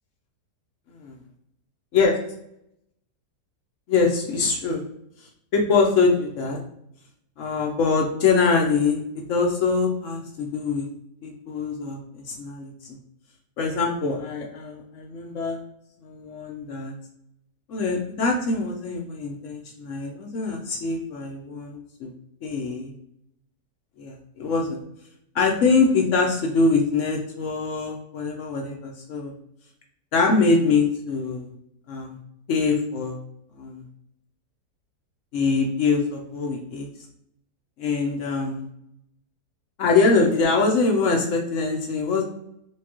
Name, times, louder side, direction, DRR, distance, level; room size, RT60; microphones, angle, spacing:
voice 1, 3.9-4.8 5.5-6.6 7.4-10.9 11.2-13.0 13.6-15.6 16.0-16.9 17.7-22.1 22.4-22.9 24.0-24.8 25.3-29.3 30.1-31.5 31.9-32.2 32.5-33.2 33.5-33.8 35.3-36.9 37.8-38.6 39.8-42.2, left 4 dB, 65° left, 0 dB, 0.8 m, -23 dB
4.4 x 2.3 x 3.0 m, 0.77 s
omnidirectional pair, 1.9 m